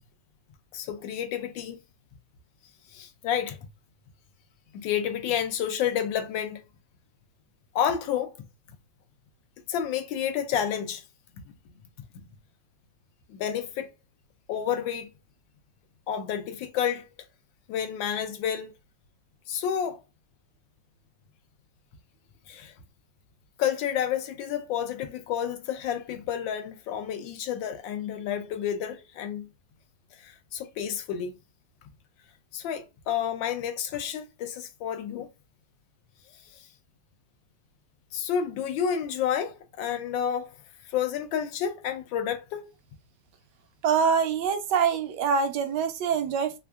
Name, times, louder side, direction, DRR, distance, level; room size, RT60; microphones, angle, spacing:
voice 1, 0.7-1.8 2.9-3.6 4.7-6.6 7.7-8.4 9.7-11.0 13.3-13.9 14.5-15.1 16.1-17.0 17.7-18.7 19.5-20.0 22.5-22.7 23.6-29.5 30.2-31.4 32.5-35.3 38.1-40.5 40.9-42.7, left 9 dB, 90° left, 1.4 m, -30 dB
voice 2, 43.8-46.6, right 6 dB, 75° right, 1.1 m, -25 dB
3.6 x 3.4 x 2.2 m
omnidirectional pair, 2.0 m